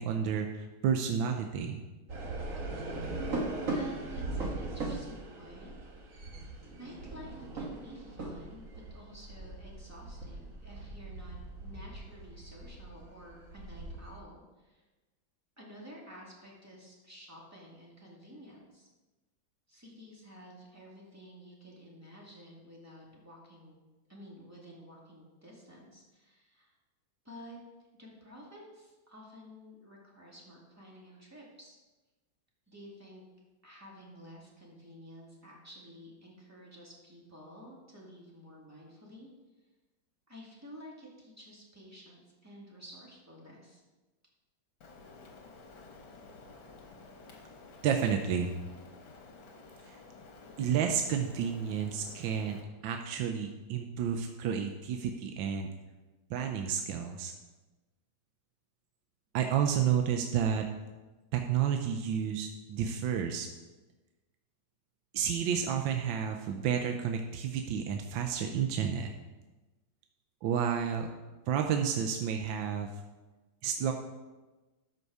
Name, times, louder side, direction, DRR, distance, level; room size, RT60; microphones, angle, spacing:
voice 1, 0.0-1.8 47.8-48.5 50.6-52.6 52.8-55.7 56.3-57.3 59.3-60.6 61.3-63.5 65.1-69.1 70.4-71.1 71.5-72.9 73.6-73.9, right 8 dB, 80° right, 4 dB, 1.4 m, -30 dB
sound 1, 2.1-14.2, right 2 dB, 45° right, 1.7 m, -39 dB
voice 2, 3.7-5.8 6.0-6.3 6.8-8.6 8.9-14.8 15.6-18.9 19.7-23.8 24.1-26.7 27.2-27.6 28.0-31.8 32.7-33.2 33.6-39.3 40.3-43.8, equal, 10° right, -4 dB, 2.1 m, -51 dB
Rain, 44.8-52.6, left 3 dB, 75° left, 2.1 m, -52 dB
12.5 x 5.3 x 4.8 m, 1.2 s
omnidirectional pair, 2.2 m